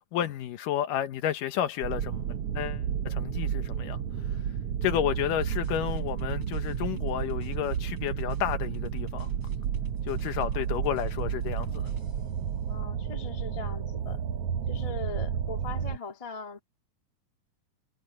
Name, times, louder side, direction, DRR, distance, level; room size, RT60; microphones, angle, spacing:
voice 1, 0.1-2.2 2.6-4.0 4.8-9.3 10.1-11.9, left 11 dB, 70° left, 2.5 m, -31 dB
sound 1, 1.8-16.0, right 8 dB, 90° right, 1.3 m, -32 dB
sound 2, 5.2-12.5, right 2 dB, 30° right, 8.3 m, -51 dB
voice 2, 12.7-14.2 14.7-16.6, left 4 dB, 35° left, 0.5 m, -40 dB
omnidirectional pair, 4.1 m